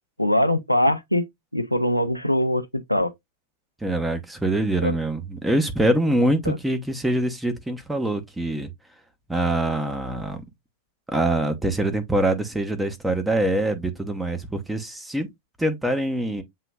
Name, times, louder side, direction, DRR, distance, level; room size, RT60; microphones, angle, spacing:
voice 1, 0.2-1.3 1.5-3.1 4.8-4.9 6.5-6.6, left 1 dB, 90° left, 0.5 m, -22 dB
voice 2, 3.8-8.7 9.3-10.4 11.1-15.3 15.6-16.4, right 1 dB, 5° right, 0.9 m, -24 dB
7.5 x 3.0 x 2.3 m
figure-of-eight pair, 90°, 0 cm